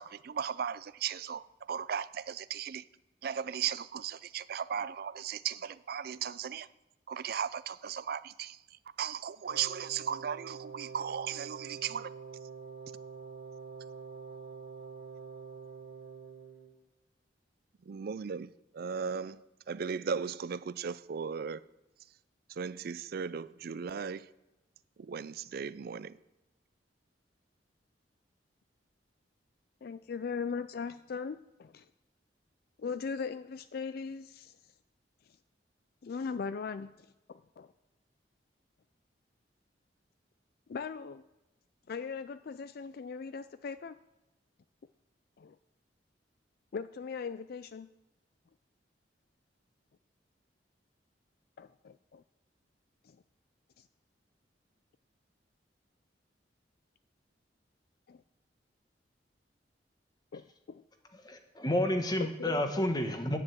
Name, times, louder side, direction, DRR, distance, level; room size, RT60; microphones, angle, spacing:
voice 1, 0.0-2.9 3.2-6.7 7.1-12.1 17.9-19.4 19.7-21.6 22.5-24.3 25.0-26.2, right 7 dB, 55° right, 0.4 m, -37 dB
Wind instrument woodwind instrument, 9.4-16.7, right 5 dB, 85° right, 1.5 m, -46 dB
voice 2, 29.8-31.8 32.8-34.6 36.0-37.7 40.7-41.2 41.9-43.9 45.4-45.6 46.7-47.9 51.6-52.2 53.0-53.2 53.8-53.9 58.1-58.2 60.3-60.8 62.2-62.6, left 5 dB, 55° left, 0.4 m, -39 dB
voice 3, 61.2-63.4, left 1 dB, 25° left, 1.2 m, -30 dB
9.7 x 7.5 x 7.8 m
head